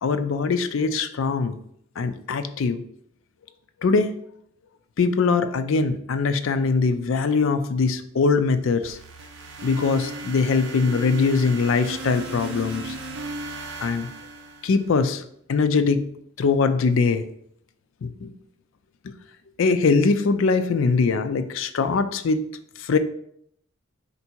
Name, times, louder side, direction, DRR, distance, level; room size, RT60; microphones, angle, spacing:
voice 1, 0.0-1.6 2.0-2.8 3.8-4.1 5.0-9.0 9.6-12.9 13.8-14.1 14.6-15.2 15.5-16.0 16.4-17.2 18.0-18.3 19.0-19.1 19.6-22.4 22.8-23.0, left 4 dB, 70° left, 10 dB, 0.4 m, -22 dB
sound 1, 8.8-15.0, right 2 dB, 60° right, 0.6 m, -36 dB
4.5 x 2.7 x 4.3 m, 0.69 s
head